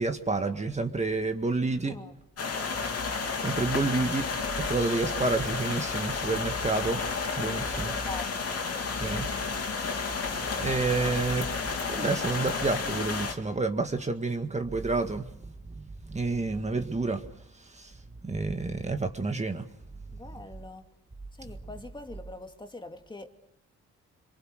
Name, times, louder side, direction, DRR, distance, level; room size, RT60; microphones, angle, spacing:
voice 1, 0.0-2.0 2.9-3.0 3.4-4.3 4.6-7.0 7.4-7.9 9.0-9.3 10.6-11.5 11.9-15.3 15.8-17.3 17.7-17.9 18.2-19.7, right 3 dB, 20° right, 1.8 m, -29 dB
voice 2, 1.8-2.2 7.4-8.7 20.1-20.9 21.4-23.3, left 2 dB, 15° left, 2.3 m, -43 dB
sound 1, 2.4-13.3, left 4 dB, 50° left, 3.2 m, -31 dB
27.0 x 23.0 x 6.5 m
cardioid pair, 90°, 30 cm